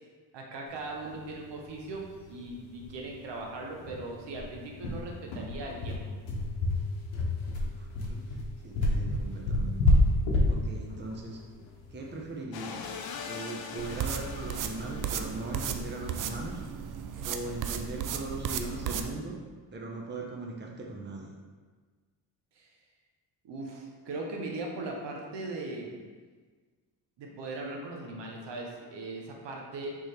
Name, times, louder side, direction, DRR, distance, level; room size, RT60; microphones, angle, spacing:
voice 1, 0.3-6.0 22.6-22.7 23.4-26.0 27.2-30.0, right 2 dB, 65° right, 0 dB, 0.9 m, -39 dB
sound 1, 1.9-2.0 2.3-2.4 2.8-2.9 3.3-3.4 3.9-12.3, left 2 dB, 90° left, 0.9 m, -27 dB
voice 2, 7.6-8.2 8.6-9.8 10.5-11.4 11.9-12.9 13.2-16.6 17.2-19.4 19.7-21.3, right 2 dB, 25° right, -1 dB, 0.8 m, -39 dB
sound 2, 12.5-16.0, left 6 dB, 55° left, 0.6 m, -42 dB
sound 3, 13.8-19.1, right 7 dB, 45° right, 0.4 m, -35 dB
3.7 x 3.1 x 4.2 m, 1.5 s
supercardioid pair, 70°, 46 cm